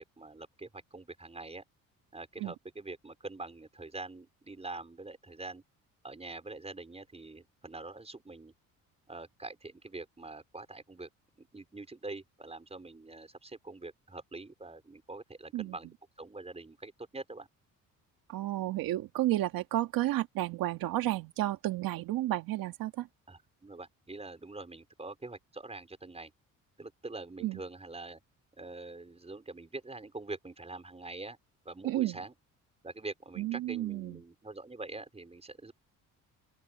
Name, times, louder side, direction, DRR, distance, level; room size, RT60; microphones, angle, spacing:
voice 1, 0.0-1.6 2.1-5.6 6.0-8.5 9.1-11.1 11.4-15.9 16.2-17.5 23.3-26.3 26.8-28.2 28.6-31.4 31.6-32.3 32.8-35.7, right 3 dB, 20° right, 5.1 m, -44 dB
voice 2, 18.3-23.1 27.4-27.6 31.8-32.2 33.4-34.2, right 15 dB, 80° right, 1.9 m, -32 dB
open air
cardioid pair, 85°, 34 cm